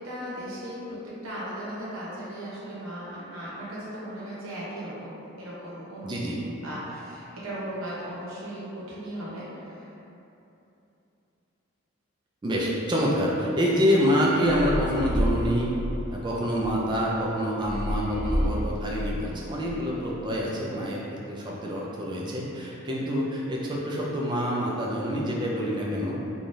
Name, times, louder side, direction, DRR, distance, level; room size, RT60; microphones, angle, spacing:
voice 1, 0.0-6.1 6.6-9.9, equal, 85° right, -8 dB, 0.8 m, -37 dB
voice 2, 6.0-6.4 12.4-15.7 16.1-26.2, equal, 20° right, -4 dB, 0.3 m, -26 dB
sound 1, 14.5-16.6 17.6-19.7, equal, 55° left, 0.7 m, -29 dB
3.2 x 2.3 x 2.6 m, 2.9 s
head